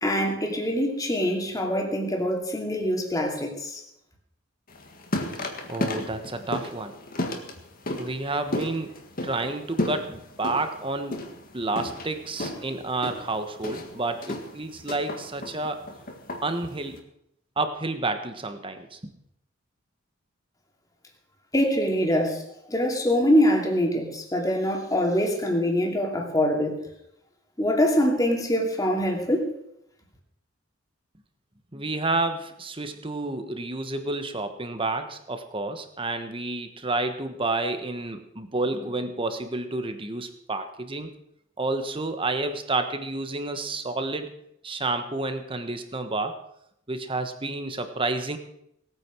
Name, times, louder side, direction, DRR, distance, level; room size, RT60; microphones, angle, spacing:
voice 1, 0.0-3.8 21.5-22.4 22.7-26.8 27.6-29.5, equal, 20° left, 1 dB, 2.6 m, -24 dB
sound 1, 4.7-17.0, left 1 dB, 45° left, 1.8 m, -34 dB
voice 2, 5.7-6.9 7.9-8.9 9.2-11.2 11.5-15.8 16.4-17.0 17.6-19.1 31.7-41.1 41.6-44.3 44.6-46.4 46.9-48.4, right 2 dB, 25° right, 8 dB, 1.3 m, -30 dB
18.5 x 9.1 x 6.2 m, 0.77 s
head